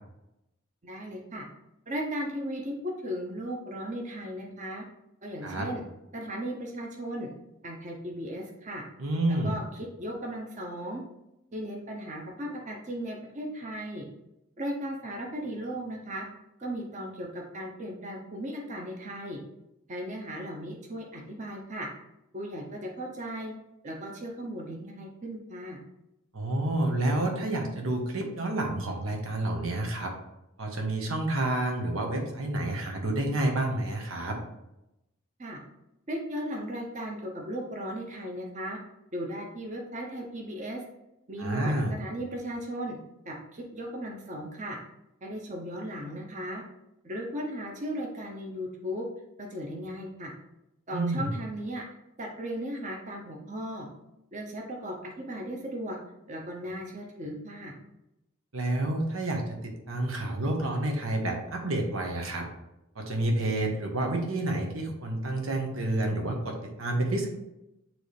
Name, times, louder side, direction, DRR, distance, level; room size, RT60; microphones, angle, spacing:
voice 1, 0.8-1.4 1.9-4.8 5.2-5.8 6.1-7.3 7.6-8.8 9.3-11.0 11.5-14.1 14.6-16.3 16.6-19.4 19.9-21.9 22.3-23.5 23.8-25.8 35.4-35.6 36.1-38.8 39.1-40.8 41.3-43.0 43.2-44.8 45.2-46.6 47.0-49.1 49.4-50.3 50.9-51.8 52.2-53.9 54.3-56.0 56.3-57.7, equal, 35° right, 0 dB, 0.8 m, -36 dB
voice 2, 9.0-9.6 26.3-30.1 30.6-34.4 41.4-41.9 50.9-51.3 58.5-62.5 62.9-67.3, right 1 dB, 85° right, 1 dB, 1.3 m, -29 dB
9.0 x 3.2 x 3.4 m, 0.90 s
head